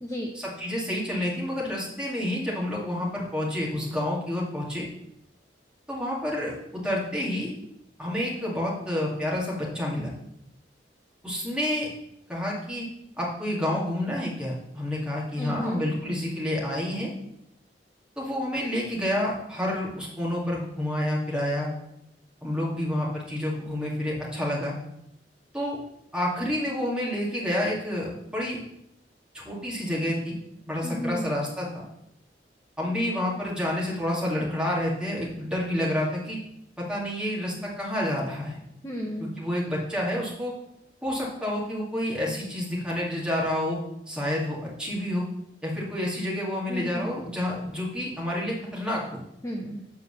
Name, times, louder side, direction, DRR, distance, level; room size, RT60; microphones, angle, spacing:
voice 1, 0.3-4.9 5.9-7.5 8.0-10.1 11.2-11.9 12.3-12.9 13.2-17.1 18.2-21.7 22.4-24.8 25.5-25.8 26.1-28.6 29.3-30.3 30.6-31.8 32.8-36.4 36.8-38.6 39.2-40.5 41.0-43.8 44.1-45.3 45.6-49.2, left 1 dB, 5° right, -5 dB, 2.4 m, -29 dB
voice 2, 15.4-15.8 30.8-31.3 38.8-39.3 46.7-47.0 49.4-49.8, equal, 15° left, -1 dB, 0.8 m, -32 dB
7.9 x 4.6 x 7.1 m, 0.81 s
head